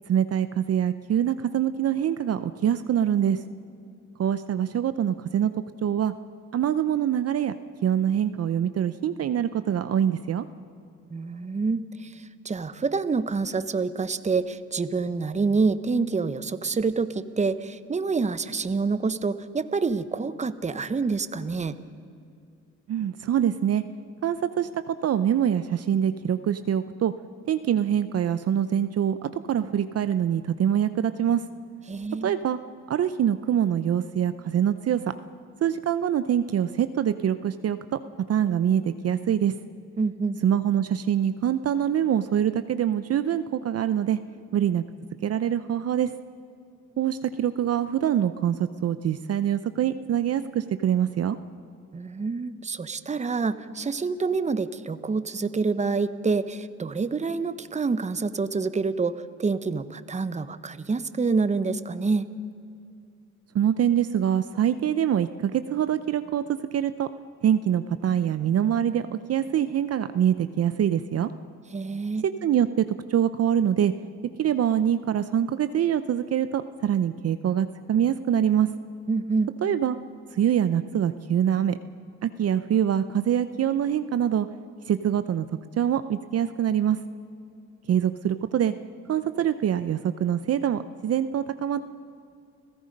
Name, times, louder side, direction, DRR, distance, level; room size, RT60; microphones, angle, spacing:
voice 1, 0.1-3.4 4.2-5.5 5.8-6.1 6.5-7.5 7.8-10.4 22.9-23.8 24.2-27.1 27.5-31.4 32.2-32.6 32.9-35.0 35.6-37.8 38.3-39.5 40.4-44.2 44.5-44.8 45.2-46.1 47.0-51.4 63.5-67.1 67.4-71.3 72.4-72.8 73.1-73.9 74.4-78.7 79.6-80.0 80.3-81.8 82.2-84.5 84.9-85.5 85.8-87.0 87.9-88.7 89.1-91.8, right 9 dB, 55° right, 12 dB, 0.7 m, -24 dB
voice 2, 11.1-21.7 31.9-32.4 40.0-40.4 51.9-62.2 71.7-72.3 79.1-79.5, right 4 dB, 25° right, 13 dB, 0.9 m, -27 dB
30.0 x 16.0 x 5.3 m, 2.5 s
cardioid pair, 90°, 30 cm